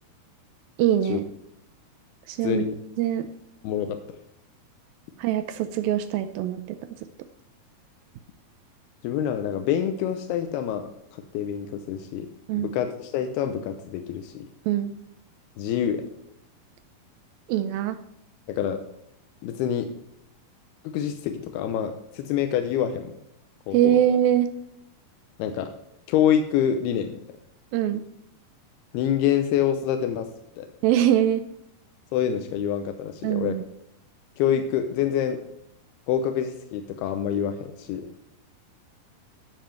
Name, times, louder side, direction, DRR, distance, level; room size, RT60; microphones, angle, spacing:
voice 1, 0.8-1.2 2.3-2.7 3.0-3.3 5.2-6.8 12.5-12.7 14.7-14.9 17.5-18.0 23.7-24.5 27.7-28.1 30.8-31.4 33.2-33.6, right 11 dB, 85° right, 10 dB, 2.1 m, -23 dB
voice 2, 2.4-2.8 3.6-4.0 9.0-10.9 11.3-12.3 12.5-14.5 15.6-16.1 18.5-18.8 19.4-19.9 20.9-23.1 23.7-24.0 25.4-25.7 26.1-27.1 28.9-30.3 30.6-30.7 32.1-33.6 34.4-35.4 36.1-38.1, left 9 dB, 85° left, 7 dB, 2.6 m, -26 dB
10.5 x 7.6 x 4.4 m, 0.78 s
omnidirectional pair, 4.6 m